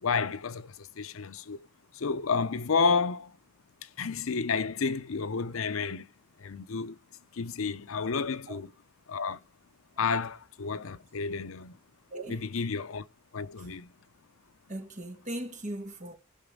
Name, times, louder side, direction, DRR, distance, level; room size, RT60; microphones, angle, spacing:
voice 1, 0.0-1.7 1.9-3.3 3.8-6.1 6.4-7.0 7.3-8.7 9.1-9.4 10.0-11.8 12.3-13.0 13.3-13.9, left 5 dB, 80° left, 0.6 m, -31 dB
voice 2, 12.1-12.4 13.6-13.7 14.7-16.1, right 1 dB, 35° right, 1.5 m, -38 dB
18.0 x 6.0 x 3.7 m
head